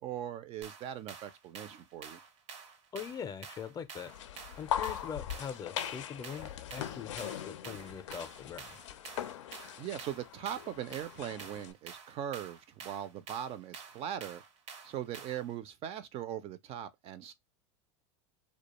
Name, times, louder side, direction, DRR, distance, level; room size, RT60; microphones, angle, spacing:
voice 1, 0.0-2.2 9.8-14.4 14.8-17.3, right 10 dB, 40° right, 0.4 m, -40 dB
sound 1, 0.6-15.5, right 6 dB, 75° right, 0.7 m, -50 dB
voice 2, 2.9-4.1 4.6-8.8, left 7 dB, 25° left, 0.4 m, -42 dB
sound 2, 4.1-11.7, left 10 dB, 85° left, 0.4 m, -40 dB
2.3 x 2.2 x 2.9 m
hypercardioid pair, 105°, 15 cm